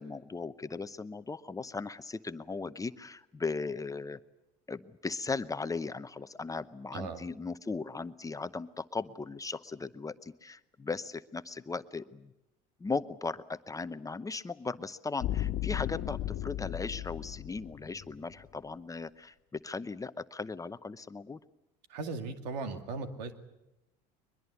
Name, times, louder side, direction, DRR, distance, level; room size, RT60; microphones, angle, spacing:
voice 1, 0.0-4.2 4.7-12.3 12.8-21.4, left 4 dB, 15° left, 12 dB, 0.8 m, -37 dB
sound 1, 15.2-18.4, left 13 dB, 60° left, 1.4 m, -35 dB
voice 2, 21.9-23.3, right 4 dB, 85° right, 7 dB, 2.3 m, -37 dB
22.5 x 21.5 x 8.3 m, 0.93 s
supercardioid pair, 85°, 21 cm